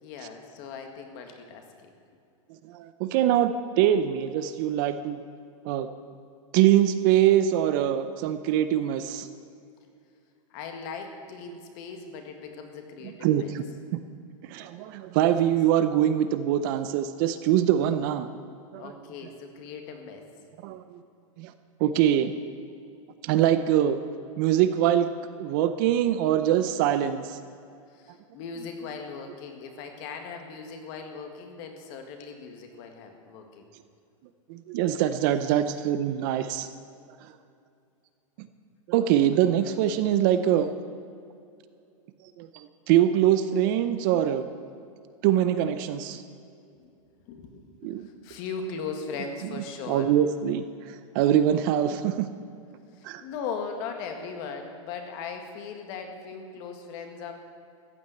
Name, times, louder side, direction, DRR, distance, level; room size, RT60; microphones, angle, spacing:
voice 1, 0.0-1.9 10.5-13.5 18.8-20.3 27.9-33.7 46.8-46.9 47.3-47.9 48.2-50.1 53.0-57.3, left 5 dB, 40° left, 4 dB, 1.8 m, -38 dB
voice 2, 2.7-5.2 5.6-5.9 6.5-9.3 11.5-11.6 13.2-13.6 13.9-14.0 14.5-18.3 18.7-18.9 20.6-21.0 21.4-21.5 21.8-22.3 23.2-24.0 24.4-25.1 25.4-27.4 34.5-36.7 38.9-40.7 42.4-44.5 45.2-46.2 47.8-48.1 49.9-50.6 51.1-52.3 53.0-53.2, right 11 dB, 40° right, 11 dB, 0.6 m, -23 dB
14.5 x 8.8 x 7.8 m, 2.5 s
supercardioid pair, 160°, 17 cm